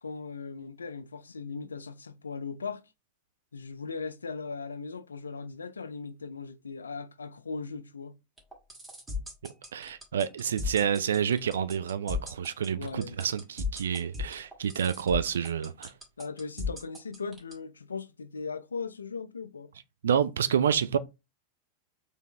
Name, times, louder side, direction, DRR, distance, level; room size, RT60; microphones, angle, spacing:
voice 1, 0.0-2.8 3.5-8.1 12.8-13.2 16.2-19.7, left 4 dB, 75° left, 0.4 m, -38 dB
sound 1, 8.4-17.5, left 4 dB, 10° right, 1.9 m, -36 dB
voice 2, 9.7-15.9 20.0-21.0, right 8 dB, 65° right, 0.3 m, -28 dB
4.3 x 3.3 x 3.0 m
figure-of-eight pair, 90°, 0 cm